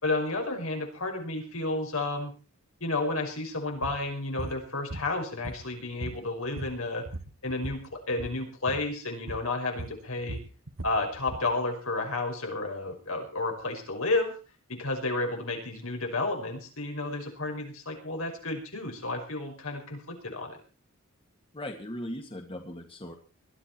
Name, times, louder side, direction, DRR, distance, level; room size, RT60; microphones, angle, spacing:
voice 1, 0.0-2.3 2.8-7.0 7.4-7.8 8.1-10.4 10.8-14.4 14.7-20.6, left 2 dB, 80° left, 2 dB, 5.8 m, -31 dB
sound 1, 3.8-4.0 4.4-4.6 4.9-5.7 6.0-7.8 8.1-8.4 8.7-8.9 9.3-9.5 9.8-11.5, right 2 dB, 90° right, 1.8 m, -39 dB
voice 2, 21.5-23.1, left 1 dB, 25° left, 4 dB, 1.9 m, -38 dB
21.0 x 12.5 x 4.5 m, 0.35 s
head